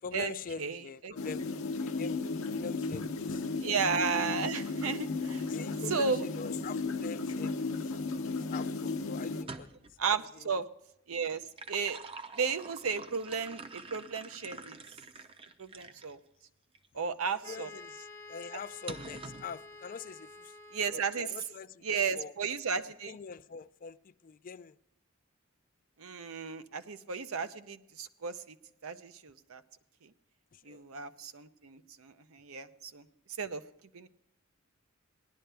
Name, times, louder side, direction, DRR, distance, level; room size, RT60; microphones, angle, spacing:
voice 1, 0.0-1.5 1.8-3.5 5.2-7.7 8.4-9.7 10.1-10.6 17.2-20.6 20.9-22.3 23.1-24.8 30.5-30.8, left 5 dB, 40° left, 0.4 m, -44 dB
voice 2, 0.6-1.1 3.6-5.4 5.9-6.2 10.0-10.7 11.1-11.4 11.7-12.0 12.4-14.8 15.6-16.2 16.9-17.7 20.7-21.3 21.8-23.2 26.0-28.5 28.8-29.6 30.0-30.1 30.7-33.1 33.4-33.6 33.9-34.1, right 5 dB, 80° right, 0.7 m, -34 dB
sound 1, 1.2-9.4, left 3 dB, 75° left, 0.8 m, -34 dB
sound 2, 9.4-10.0 11.3-16.1 16.7-16.9 18.9-19.5, right 3 dB, 25° right, 0.6 m, -46 dB
Wind instrument woodwind instrument, 17.4-21.5, left 2 dB, 15° left, 0.7 m, -50 dB
18.0 x 11.0 x 3.4 m
head